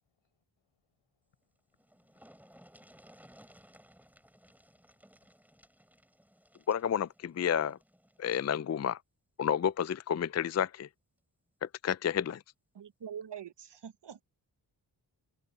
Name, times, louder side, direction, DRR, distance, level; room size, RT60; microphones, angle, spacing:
voice 1, 0.2-5.3, left 7 dB, 85° left, 5.3 m, -82 dB
sound 1, 1.4-1.5 1.7-8.5 9.8-10.0 10.4-10.5, equal, 5° right, 4.5 m, -60 dB
voice 2, 6.7-7.8 8.2-9.0 9.4-10.9 11.6-12.4, left 8 dB, 35° left, 0.5 m, -30 dB
voice 3, 12.7-14.2, right 8 dB, 65° right, 1.2 m, -44 dB
cardioid pair, 60°, 45 cm